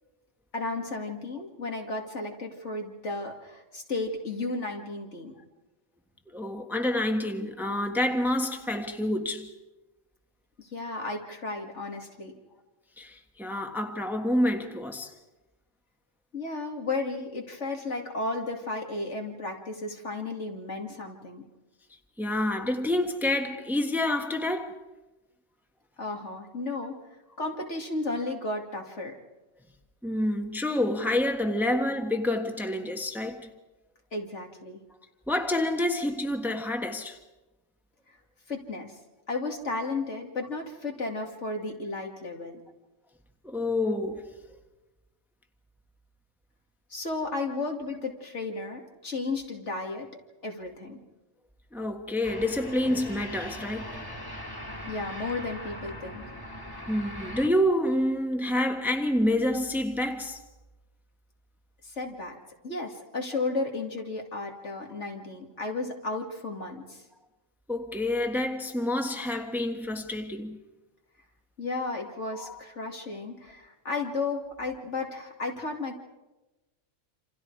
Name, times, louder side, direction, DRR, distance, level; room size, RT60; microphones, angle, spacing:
voice 1, 0.5-5.3 10.6-12.4 16.3-21.4 26.0-27.0 27.4-29.1 34.1-34.8 38.5-38.9 39.3-42.6 46.9-50.1 50.4-51.0 54.8-56.2 61.8-62.4 62.6-67.0 71.6-76.0, left 3 dB, 65° left, 2.9 m, -33 dB
voice 2, 6.3-9.5 13.0-15.1 22.2-24.8 30.0-33.5 35.3-37.2 43.4-44.2 51.7-54.0 56.9-60.4 67.7-70.6 72.3-72.6, left 1 dB, ahead, 1.4 m, -28 dB
sound 1, 52.2-57.5, left 1 dB, 15° left, 2.2 m, -40 dB
28.0 x 27.5 x 4.8 m
omnidirectional pair, 1.3 m